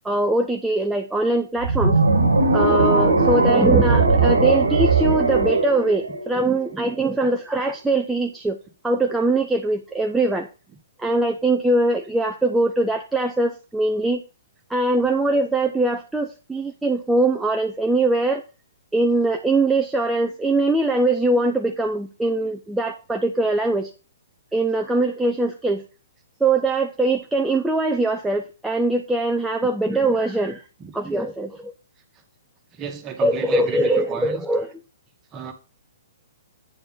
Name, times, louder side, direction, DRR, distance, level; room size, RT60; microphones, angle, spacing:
voice 1, 0.0-2.0 2.5-8.6 8.8-10.5 11.0-14.2 14.7-18.4 18.9-23.9 24.5-25.8 26.4-30.6 30.9-31.7 33.2-34.7, right 2 dB, 5° right, 0.8 m, -22 dB
sound 1, 1.6-6.8, right 3 dB, 75° right, 1.4 m, -19 dB
voice 2, 32.8-34.4 35.3-35.5, right 7 dB, 25° right, 1.9 m, -32 dB
9.3 x 4.5 x 5.6 m
figure-of-eight pair, 120°, 0 cm